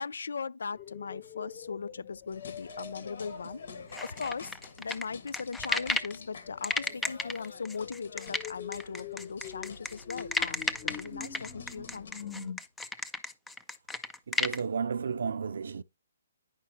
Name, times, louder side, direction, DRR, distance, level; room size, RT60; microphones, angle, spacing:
voice 1, 0.0-3.6 4.0-12.3, left 5 dB, 85° left, 0.4 m, -39 dB
sound 1, 0.7-4.4 5.6-12.5, left 7 dB, 25° left, 1.0 m, -46 dB
sound 2, 2.3-12.1, left 5 dB, 65° left, 1.3 m, -49 dB
sound 3, 3.9-6.2 6.6-14.6, left 3 dB, 5° left, 0.4 m, -33 dB
voice 2, 14.3-15.8, right 6 dB, 75° right, 0.5 m, -32 dB
9.7 x 5.5 x 3.1 m
hypercardioid pair, 165°, 0 cm